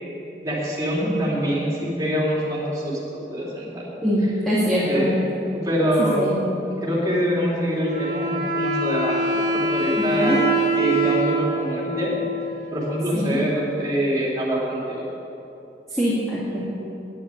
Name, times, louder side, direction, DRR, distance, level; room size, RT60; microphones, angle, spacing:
voice 1, 0.4-3.0 3.3-3.8 4.9-5.2 5.5-6.3 6.8-10.4 10.7-12.1 12.7-15.0, equal, 20° right, -6 dB, 3.2 m, -25 dB
voice 2, 4.0-5.1 6.2-6.3 10.0-10.4 13.1-13.4 15.9-16.6, equal, 5° left, -9 dB, 2.1 m, -23 dB
Wind instrument woodwind instrument, 7.8-13.3, right 2 dB, 70° right, 2.1 m, -24 dB
10.0 x 8.5 x 9.2 m, 2.9 s
head